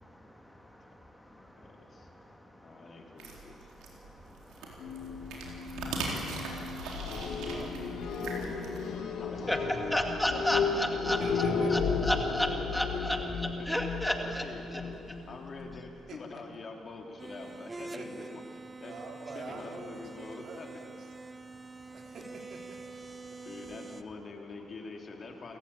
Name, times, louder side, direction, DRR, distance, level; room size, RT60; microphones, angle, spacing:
voice 1, 0.0-7.1 8.2-9.2 9.5-9.6 9.9-11.4 11.7-13.2 13.7-14.4 14.7-14.8, equal, 5° left, 4 dB, 2.3 m, -36 dB
voice 2, 1.6-2.1 2.6-3.7 9.2-9.8 10.3-11.1 11.6-11.7 12.4-13.7 14.2-15.0 15.3-18.4 18.8-19.0 19.3-20.7 23.4-25.6, left 3 dB, 45° left, 2 dB, 3.3 m, -45 dB
sound 1, 3.2-8.8, right 3 dB, 90° right, 4.0 m, -40 dB
sound 2, 4.8-15.8, left 5 dB, 80° left, 2.9 m, -34 dB
voice 3, 7.0-7.8 11.2-11.7 12.9-13.5 14.7-15.4 16.1-16.2 16.5-16.6 17.8-18.3 18.8-21.1 21.9-22.8 23.3-23.4, right 3 dB, 60° right, 2 dB, 3.8 m, -48 dB
sound 3, 17.2-24.0, right 3 dB, 20° right, 1.0 m, -45 dB
29.0 x 14.5 x 8.8 m, 2.4 s
cardioid pair, 90°, 0 cm